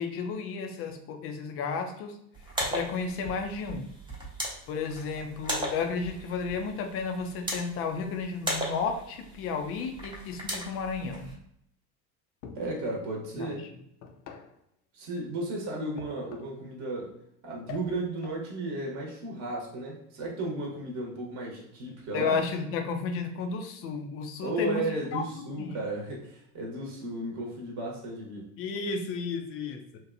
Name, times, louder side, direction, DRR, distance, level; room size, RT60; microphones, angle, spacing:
voice 1, 0.0-2.2 2.7-3.9 4.7-11.3 13.4-13.5 22.1-24.8 25.1-25.2 25.6-25.8 28.6-30.0, left 5 dB, 30° left, 4 dB, 0.4 m, -32 dB
sound 1, 2.3-11.3, right 1 dB, 10° right, 0.7 m, -37 dB
sound 2, 12.4-12.9 14.0-14.6 16.0-16.6 17.7-18.4, left 6 dB, 85° left, 0.6 m, -46 dB
voice 2, 12.5-13.7 14.9-17.2 17.4-22.4 24.4-28.5, right 2 dB, 35° right, -1 dB, 1.0 m, -34 dB
2.8 x 2.2 x 2.5 m, 0.73 s
hypercardioid pair, 85°, 50 cm